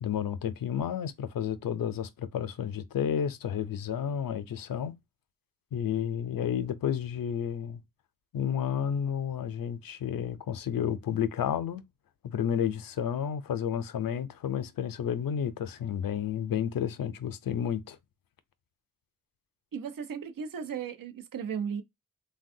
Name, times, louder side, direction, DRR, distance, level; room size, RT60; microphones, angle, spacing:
voice 1, 0.0-4.9 5.7-7.8 8.3-11.8 12.2-18.0, left 8 dB, 75° left, 0.5 m, -31 dB
voice 2, 19.7-21.8, right 7 dB, 70° right, 0.6 m, -35 dB
3.3 x 2.2 x 2.6 m
cardioid pair, 55°, 34 cm